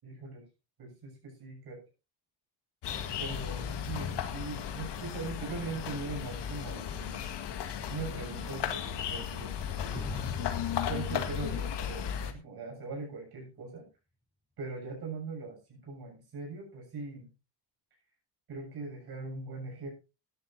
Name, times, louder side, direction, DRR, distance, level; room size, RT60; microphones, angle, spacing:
voice 1, 0.0-0.4 0.8-1.8 3.2-7.2 7.9-10.1 10.9-13.9 14.6-17.3 18.5-19.9, right 3 dB, 55° right, -1 dB, 7.4 m, -41 dB
sound 1, 2.8-12.3, left 9 dB, 65° left, 1.9 m, -35 dB
sound 2, 9.9-12.4, equal, 5° right, 3.7 m, -43 dB
17.0 x 13.0 x 2.7 m, 0.29 s
cardioid pair, 160°, 44 cm